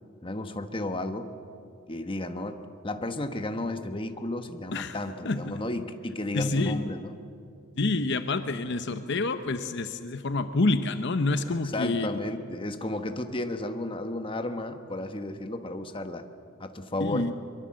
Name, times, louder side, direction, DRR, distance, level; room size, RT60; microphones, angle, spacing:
voice 1, 0.2-1.3 1.9-7.1 11.5-16.3 16.6-17.3, left 1 dB, 25° left, 7 dB, 1.2 m, -33 dB
voice 2, 5.2-5.6 6.3-6.8 7.8-12.1 17.0-17.3, left 2 dB, 55° left, 10 dB, 0.8 m, -27 dB
23.5 x 23.0 x 7.6 m, 2.5 s
head